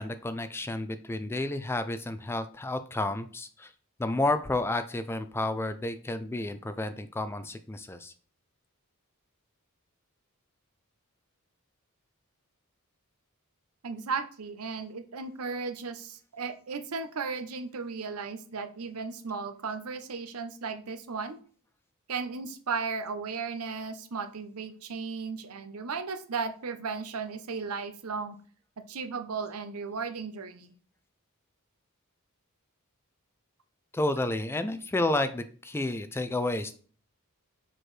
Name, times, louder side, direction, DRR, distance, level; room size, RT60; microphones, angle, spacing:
voice 1, 0.0-3.7 4.0-8.1 33.9-36.8, left 2 dB, 10° left, 11 dB, 0.3 m, -31 dB
voice 2, 13.8-21.4 22.1-28.4 28.8-30.7, right 5 dB, 75° right, 10 dB, 0.7 m, -35 dB
6.5 x 4.5 x 3.2 m, 0.43 s
head